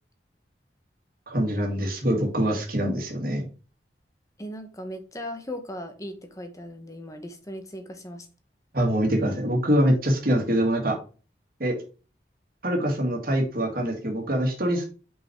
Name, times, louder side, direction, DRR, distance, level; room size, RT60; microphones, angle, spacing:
voice 1, 1.3-3.4 8.7-11.0 11.6-11.7 12.6-14.8, equal, 55° right, 2.0 m, -24 dB
voice 2, 4.4-8.3, equal, 20° left, 1.2 m, -38 dB
5.5 x 5.5 x 4.6 m
head